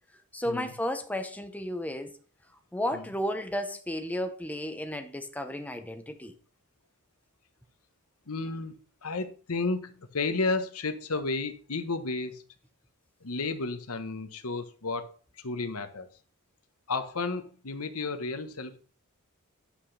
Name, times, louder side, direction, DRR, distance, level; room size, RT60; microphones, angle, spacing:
voice 1, 0.3-2.1 2.7-6.3, left 1 dB, 5° left, 0.9 m, -33 dB
voice 2, 8.3-8.7 9.0-12.4 13.2-15.1 15.4-16.1 16.9-18.8, left 3 dB, 75° left, 1.2 m, -32 dB
9.9 x 8.3 x 3.4 m
head